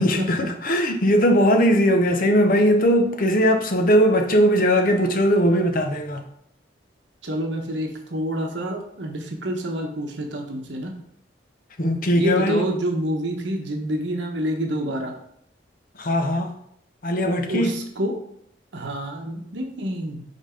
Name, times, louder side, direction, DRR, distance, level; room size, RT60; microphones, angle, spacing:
voice 1, 0.0-6.2 11.8-12.7 16.0-16.5 17.0-17.8, equal, 45° left, 0.8 m, -19 dB
voice 2, 7.2-10.9 12.1-15.1 17.5-18.1 18.7-20.2, right 1 dB, 80° right, 1.0 m, -27 dB
5.3 x 4.1 x 5.0 m
head